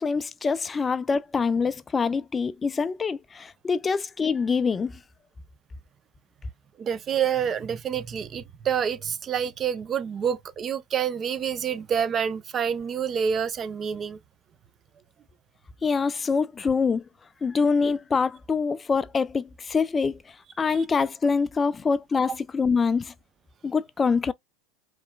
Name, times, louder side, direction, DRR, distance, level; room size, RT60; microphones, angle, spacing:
voice 1, 0.0-4.9 15.8-17.0 17.4-23.1 23.6-24.3, left 5 dB, 20° left, 0.3 m, -25 dB
voice 2, 6.8-14.2 20.7-20.8, right 8 dB, 35° right, 0.6 m, -27 dB
4.6 x 3.2 x 2.3 m
hypercardioid pair, 85°, 0 cm